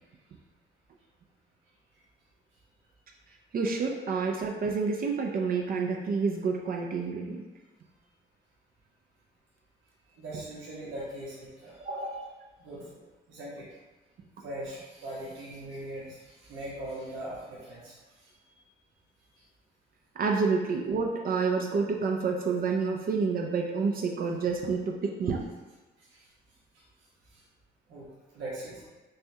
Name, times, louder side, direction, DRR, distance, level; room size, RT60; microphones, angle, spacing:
voice 1, 3.5-7.4 11.8-12.1 20.2-25.4, right 4 dB, 50° right, 1 dB, 0.5 m, -29 dB
voice 2, 10.2-12.2 12.6-13.0 13.3-13.7 14.4-18.0 26.1-26.3 27.3-27.4 27.9-28.1 28.3-28.9, right 1 dB, 90° right, -7 dB, 1.1 m, -40 dB
6.4 x 2.3 x 2.7 m, 1.2 s
cardioid pair, 90°, 20 cm